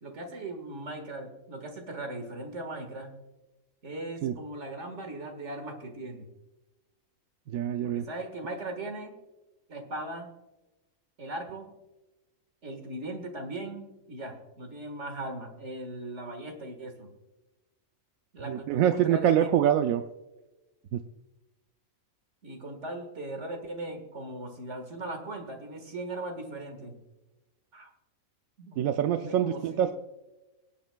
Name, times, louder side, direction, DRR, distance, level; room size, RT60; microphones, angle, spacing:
voice 1, 0.0-3.1 3.8-6.3 7.8-9.2 9.7-10.3 11.2-11.7 12.6-17.1 18.3-19.5 22.4-27.0 27.7-27.9 28.6-28.8 29.2-29.9, right 2 dB, 55° right, 5 dB, 1.9 m, -39 dB
voice 2, 7.5-8.1 18.4-20.0 20.9-21.0 28.8-29.9, right 10 dB, 80° right, 8 dB, 1.0 m, -25 dB
25.0 x 8.3 x 2.3 m, 1.1 s
omnidirectional pair, 1.5 m